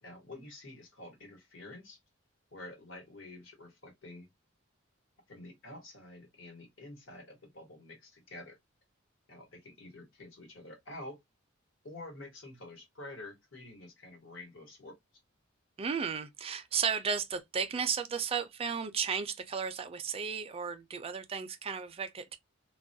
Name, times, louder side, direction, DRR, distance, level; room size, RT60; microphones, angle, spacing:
voice 1, 0.0-2.0 2.5-4.3 5.3-8.6 9.3-11.2 11.8-15.0, left 2 dB, 70° left, 1.2 m, -48 dB
voice 2, 15.8-22.4, right 6 dB, 30° right, 0.4 m, -34 dB
2.3 x 2.1 x 2.6 m
head